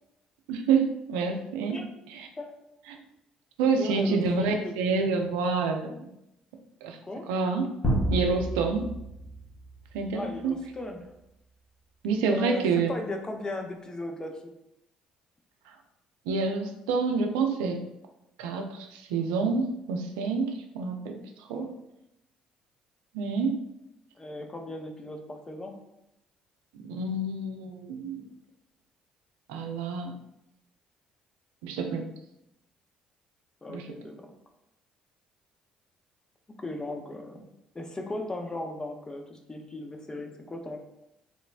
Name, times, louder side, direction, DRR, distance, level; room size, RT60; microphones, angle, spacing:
voice 1, 0.5-1.8 2.1-2.3 2.9-3.0 3.6-6.1 6.8-7.0 7.3-7.7 8.1-8.9 9.9-10.5 12.0-12.9 16.3-17.8 18.4-21.7 23.1-23.6 26.9-28.2 29.5-30.2 31.6-32.1 33.7-33.9, right 4 dB, 75° right, 4 dB, 0.3 m, -28 dB
voice 2, 3.8-5.0 7.0-7.3 10.1-11.1 12.3-14.5 21.5-21.7 24.2-25.7 33.6-34.3 36.6-37.4 37.7-40.8, left 2 dB, 25° left, 4 dB, 0.5 m, -37 dB
sound 1, 7.8-10.4, right 1 dB, 40° left, 0.9 m, -30 dB
3.0 x 2.0 x 2.4 m, 0.84 s
hypercardioid pair, 50°, 3 cm